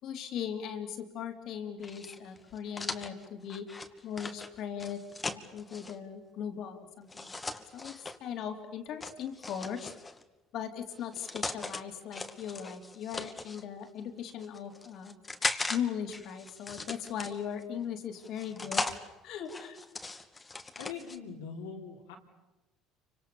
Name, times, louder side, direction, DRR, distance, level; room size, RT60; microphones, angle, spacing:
voice 1, 0.0-7.4 7.7-9.9 10.5-15.2 15.7-19.8, left 8 dB, 65° left, 7 dB, 3.5 m, -39 dB
sound 1, 1.8-5.9 7.1-8.2 9.0-10.2 10.9-11.8 12.1-13.6 14.3-15.8 16.1-17.6 18.2-19.0 19.5-21.2, left 3 dB, 20° left, 2.3 m, -38 dB
voice 2, 20.8-22.1, left 6 dB, 85° left, 1 dB, 4.1 m, -42 dB
29.0 x 25.5 x 7.1 m, 1.0 s
hypercardioid pair, 70°, 0 cm